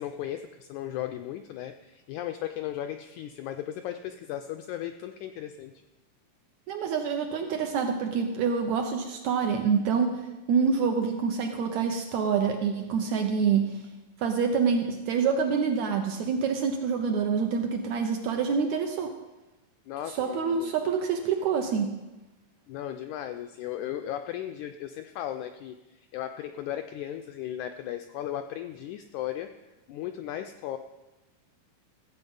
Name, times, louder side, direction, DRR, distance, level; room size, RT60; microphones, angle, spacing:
voice 1, 0.0-5.7 19.9-20.7 22.7-29.5 29.9-30.8, left 11 dB, 85° left, 7 dB, 1.7 m, -36 dB
voice 2, 6.7-13.8 14.2-19.1 20.1-21.9, right 6 dB, 75° right, 4 dB, 1.8 m, -26 dB
15.0 x 8.0 x 5.3 m, 1.1 s
omnidirectional pair, 4.0 m